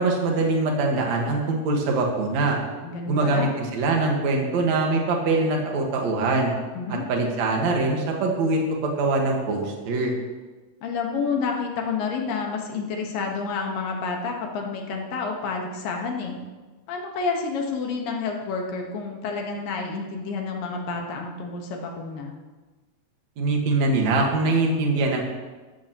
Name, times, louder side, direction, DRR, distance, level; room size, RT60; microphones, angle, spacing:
voice 1, 0.0-2.6 3.1-6.5 7.1-10.1 23.4-25.2, right 3 dB, 55° right, 0 dB, 2.7 m, -23 dB
voice 2, 2.8-3.5 6.8-7.1 10.8-16.4 16.9-22.3, left 4 dB, 75° left, 1 dB, 3.1 m, -29 dB
14.5 x 13.0 x 3.1 m, 1.3 s
omnidirectional pair, 4.1 m